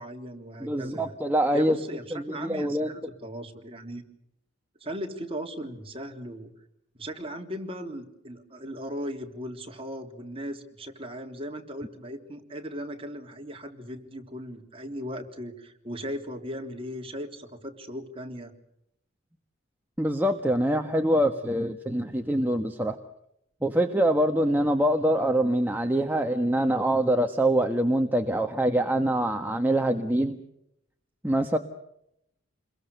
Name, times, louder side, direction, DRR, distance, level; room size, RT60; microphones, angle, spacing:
voice 1, 0.0-1.2 1.5-4.0 4.8-6.5 6.9-18.5, equal, 30° right, 3 dB, 3.6 m, -38 dB
voice 2, 0.6-1.8 2.1-2.9 20.0-23.0 23.6-30.4 31.2-31.6, right 1 dB, 10° right, 4 dB, 1.4 m, -24 dB
29.0 x 22.5 x 6.7 m, 0.78 s
head